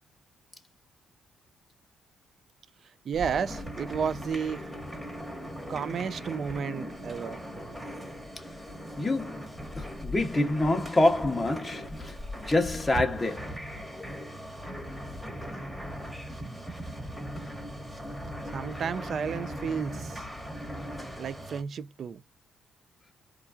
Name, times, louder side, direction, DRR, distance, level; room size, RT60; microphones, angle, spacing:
voice 1, 3.0-4.6 5.7-7.4 18.5-20.3 21.2-22.2, right 6 dB, 55° right, 0.3 m, -32 dB
sound 1, 3.1-21.6, equal, 5° right, 1.2 m, -39 dB
voice 2, 9.0-9.4 9.8-12.1 12.5-13.5, left 2 dB, 20° left, 0.7 m, -26 dB
3.0 x 2.3 x 2.3 m
cardioid pair, 90°, 0 cm